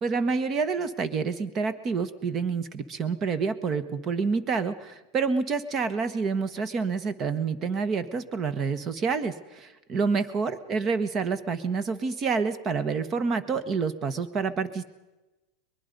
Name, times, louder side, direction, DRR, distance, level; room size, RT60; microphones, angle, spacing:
voice 1, 0.0-14.8, right 5 dB, 30° right, 13 dB, 1.4 m, -28 dB
23.0 x 21.5 x 5.4 m, 1.1 s
supercardioid pair, 135°, 0 cm